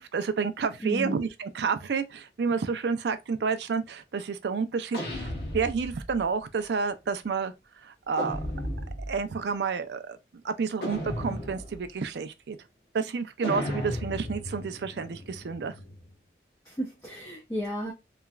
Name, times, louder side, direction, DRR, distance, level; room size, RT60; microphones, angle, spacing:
voice 1, 0.0-7.5 7.8-8.4 9.1-10.2 10.4-12.6 12.9-15.7, right 5 dB, 80° right, 0.4 m, -30 dB
voice 2, 0.8-1.2 16.6-17.9, equal, 15° left, 0.5 m, -33 dB
sound 1, 4.9-6.2 8.2-9.2 10.8-11.9 13.4-16.1, left 1 dB, 70° left, 0.9 m, -35 dB
3.0 x 2.3 x 2.3 m
head